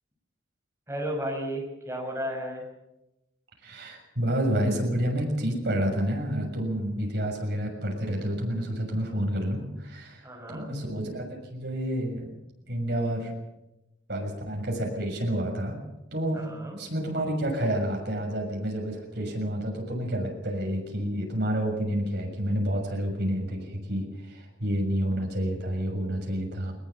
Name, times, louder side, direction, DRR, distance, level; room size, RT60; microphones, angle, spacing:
voice 1, 0.9-2.7 10.2-10.7 16.3-16.8, equal, 15° right, 0 dB, 6.2 m, -33 dB
voice 2, 3.6-12.3 12.7-13.3 14.1-15.8 16.1-16.4 16.8-26.7, equal, 60° right, 1 dB, 6.7 m, -29 dB
20.5 x 20.5 x 7.2 m, 0.93 s
head